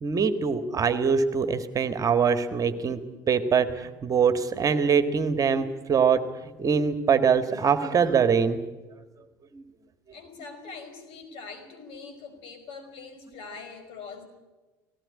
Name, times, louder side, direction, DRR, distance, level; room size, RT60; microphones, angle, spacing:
voice 1, 0.0-3.0 3.3-6.2 6.6-8.6, right 6 dB, 35° right, 10 dB, 1.7 m, -23 dB
voice 2, 10.1-14.3, left 4 dB, 65° left, 6 dB, 5.2 m, -43 dB
18.5 x 18.0 x 9.8 m, 1.2 s
hypercardioid pair, 70°, 10 cm